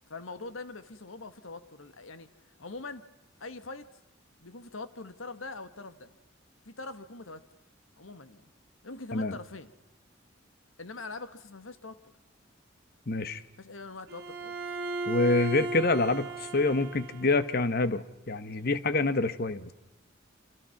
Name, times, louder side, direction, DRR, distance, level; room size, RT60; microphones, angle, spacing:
voice 1, 0.1-3.0 3.4-3.9 4.4-6.1 6.6-7.4 8.0-8.4 8.8-9.7 10.8-12.1 13.6-14.6, left 3 dB, 80° left, 12 dB, 1.6 m, -43 dB
voice 2, 13.1-13.4 15.1-19.7, left 3 dB, 50° left, 13 dB, 1.2 m, -27 dB
Bowed string instrument, 14.1-17.5, right 2 dB, 55° right, 3.4 m, -36 dB
30.0 x 26.0 x 5.9 m, 0.93 s
head